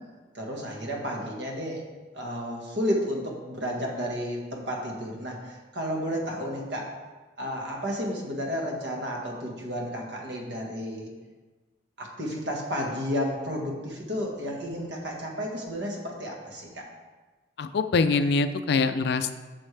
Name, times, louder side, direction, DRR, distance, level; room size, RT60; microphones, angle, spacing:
voice 1, 0.3-1.8 2.1-6.9 7.4-11.1 12.0-16.9, equal, 65° right, 0 dB, 1.5 m, -32 dB
voice 2, 17.6-19.3, left 4 dB, 60° left, 10 dB, 0.4 m, -24 dB
8.8 x 6.3 x 3.3 m, 1.3 s
head